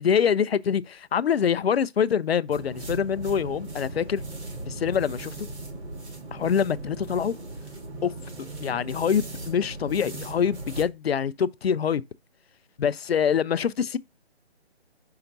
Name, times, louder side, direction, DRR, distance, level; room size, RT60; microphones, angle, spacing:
voice 1, 0.0-4.2 4.7-5.3 6.3-7.3 8.0-8.1 8.6-12.0 12.8-14.0, left 7 dB, 70° left, 0.6 m, -25 dB
sound 1, 2.5-10.9, right 2 dB, 85° right, 3.4 m, -38 dB
6.9 x 5.7 x 2.6 m
hypercardioid pair, 165°, 33 cm